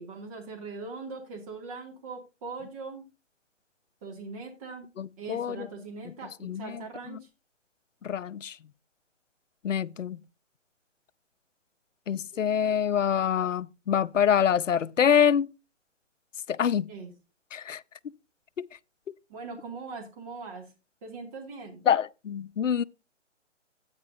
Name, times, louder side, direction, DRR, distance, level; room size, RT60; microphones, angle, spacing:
voice 1, 0.0-3.1 4.0-4.9 5.2-7.3 12.3-12.4 16.9-17.1 19.3-20.7 21.0-21.8, right 4 dB, 30° right, 2.4 m, -41 dB
voice 2, 5.0-5.7 6.4-6.7 8.0-8.5 9.6-10.2 12.1-15.5 16.5-16.9 17.5-17.8 21.9-22.8, left 8 dB, 80° left, 0.6 m, -25 dB
13.0 x 8.9 x 2.7 m
figure-of-eight pair, 145°, 37 cm